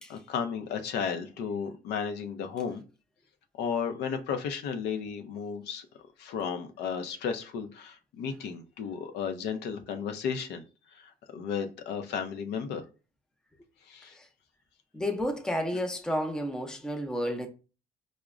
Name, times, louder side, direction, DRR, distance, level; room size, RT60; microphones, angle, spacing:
voice 1, 0.1-2.8 3.6-5.9 6.2-10.6 10.9-12.8 13.9-14.1, left 6 dB, 80° left, 0.5 m, -34 dB
voice 2, 14.9-17.5, equal, 5° left, 0.5 m, -31 dB
4.8 x 2.1 x 2.4 m
cardioid pair, 110°, 17 cm